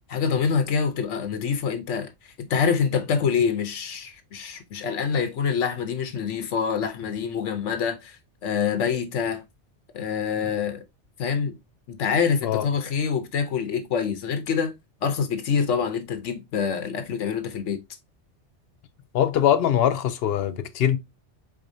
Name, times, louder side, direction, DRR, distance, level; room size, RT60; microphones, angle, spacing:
voice 1, 0.1-9.4 9.9-10.8 11.2-11.5 11.9-14.7 15.0-17.8, left 6 dB, 85° left, 1.2 m, -26 dB
voice 2, 19.1-21.0, left 10 dB, 60° left, 0.9 m, -22 dB
4.9 x 4.0 x 2.6 m
omnidirectional pair, 1.2 m